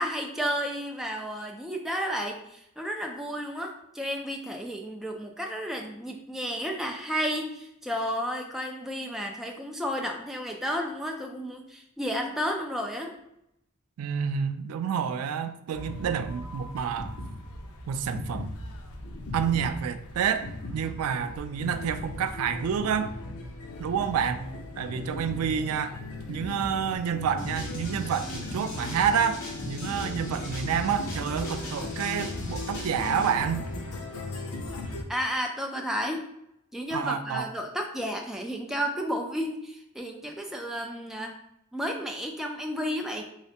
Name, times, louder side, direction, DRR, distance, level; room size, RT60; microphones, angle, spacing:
voice 1, 0.0-13.2 35.1-36.3 36.7-41.3 41.7-43.2, equal, ahead, 2 dB, 0.3 m, -32 dB
voice 2, 14.0-17.1 17.9-18.5 19.3-23.1 23.8-24.4 24.8-26.0 26.3-33.7 36.9-37.5, right 7 dB, 80° right, 10 dB, 0.3 m, -29 dB
sound 1, 15.7-35.0, left 2 dB, 85° left, 0.6 m, -37 dB
sound 2, 27.4-33.3, left 1 dB, 60° left, 1.0 m, -40 dB
3.2 x 3.2 x 2.8 m, 0.80 s
head